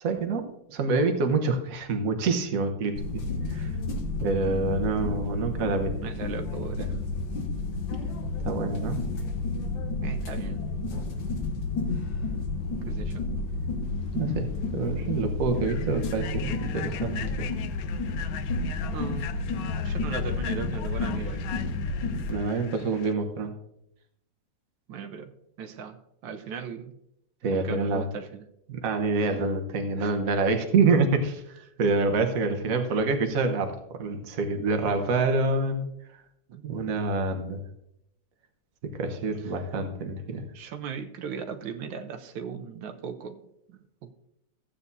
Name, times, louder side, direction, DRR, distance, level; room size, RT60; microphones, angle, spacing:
voice 1, 0.0-3.2 3.5-3.7 4.2-6.0 8.4-9.0 14.1-17.5 22.3-23.5 27.4-28.1 28.7-31.4 31.8-35.9 36.6-37.6 38.8-40.4, right 3 dB, 50° right, 5 dB, 1.4 m, -27 dB
sound 1, 3.0-22.3, left 3 dB, 90° left, 2.0 m, -31 dB
voice 2, 6.0-7.0 10.0-10.6 12.9-13.2 18.9-19.3 19.8-21.5 24.9-25.3 25.6-26.0 26.2-26.9 27.6-28.5 29.2-29.4 30.0-30.2 36.5-36.7 40.5-43.4 43.7-44.1, right 6 dB, 90° right, 7 dB, 1.5 m, -37 dB
Human voice / Train, 14.3-14.4 14.8-15.0 15.5-23.1, left 10 dB, 70° left, 0.9 m, -42 dB
14.5 x 8.5 x 2.7 m, 0.80 s
omnidirectional pair, 2.0 m